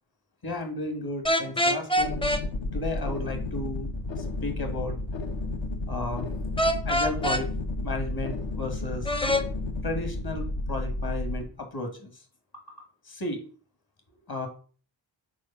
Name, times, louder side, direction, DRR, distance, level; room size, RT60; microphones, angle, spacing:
voice 1, 0.4-2.4 2.7-3.9 4.4-5.0 5.9-6.3 6.8-7.5 7.8-9.1 9.8-12.1 13.0-13.4 14.3-14.5, left 2 dB, 50° left, 5 dB, 1.7 m, -33 dB
sound 1, 1.2-2.4 6.6-7.4 9.0-9.4, equal, 10° left, 0.5 m, -24 dB
sound 2, 2.0-11.4, left 2 dB, 70° left, 1.0 m, -32 dB
4.9 x 4.5 x 5.4 m, 0.40 s
wide cardioid pair, 150°, 47 cm